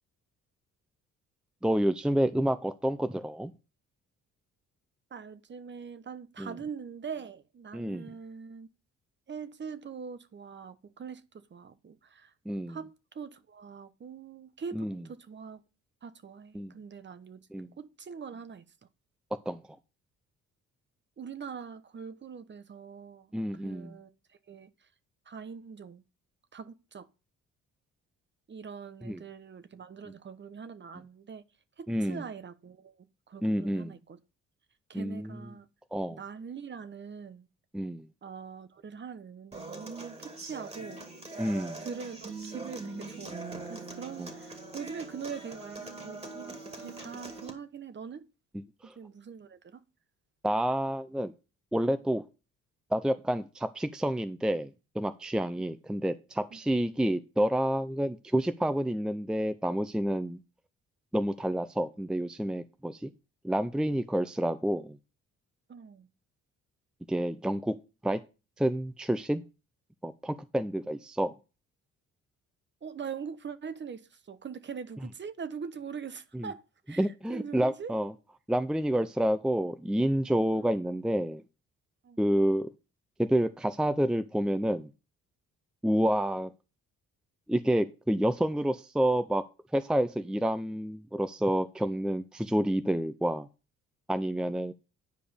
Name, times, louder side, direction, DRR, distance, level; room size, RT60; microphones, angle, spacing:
voice 1, 1.6-3.5 6.4-6.5 7.7-8.1 12.5-12.8 14.7-15.0 16.5-16.7 17.5-17.7 19.5-19.6 23.3-24.0 29.0-29.2 31.9-32.2 33.4-34.0 34.9-35.4 35.9-36.2 37.7-38.1 41.4-41.8 44.2-44.3 48.8-48.9 50.4-51.3 51.7-52.2 52.9-54.7 54.9-60.4 61.1-63.1 63.4-65.0 67.1-67.8 68.0-68.2 68.6-69.4 70.0-71.3 76.3-76.5 77.0-78.1 78.5-81.4 82.2-82.7 83.2-84.9 85.8-86.5 87.5-89.4 89.7-93.5 94.1-94.7, right 1 dB, 5° right, 0.6 m, -29 dB
voice 2, 5.1-8.7 9.3-12.3 12.7-15.6 16.0-17.4 17.8-18.6 21.2-24.1 24.5-24.9 25.3-26.0 26.5-27.1 28.5-31.4 31.8-34.2 34.9-35.7 36.1-37.5 38.2-41.0 41.8-43.4 43.7-48.3 48.8-49.8 56.5-56.6 65.7-66.1 72.8-77.9 80.5-80.7 82.0-82.2, right 6 dB, 40° right, 1.0 m, -43 dB
Human voice / Acoustic guitar, 39.5-47.5, right 3 dB, 20° right, 2.3 m, -42 dB
10.0 x 5.0 x 5.1 m
cardioid pair, 90°, 30 cm